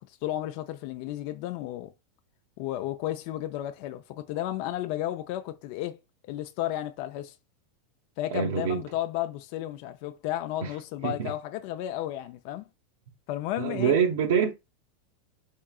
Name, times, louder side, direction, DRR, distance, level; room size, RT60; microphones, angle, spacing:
voice 1, 0.1-1.9 2.6-6.0 6.3-7.3 8.2-12.6 13.3-14.0, left 13 dB, 60° left, 0.4 m, -33 dB
voice 2, 8.3-8.8 10.6-10.7 11.0-11.3 13.6-14.5, right 7 dB, 75° right, 0.7 m, -25 dB
3.7 x 3.7 x 2.4 m
hypercardioid pair, 120°, 0 cm